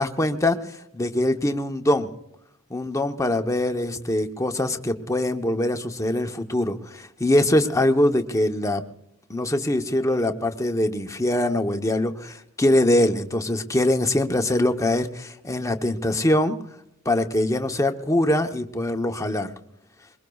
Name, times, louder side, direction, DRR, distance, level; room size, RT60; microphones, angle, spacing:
voice 1, 0.0-2.1 2.7-8.8 9.3-16.6 17.0-19.5, left 1 dB, 15° left, 6 dB, 0.9 m, -23 dB
24.0 x 21.5 x 2.4 m, 0.79 s
head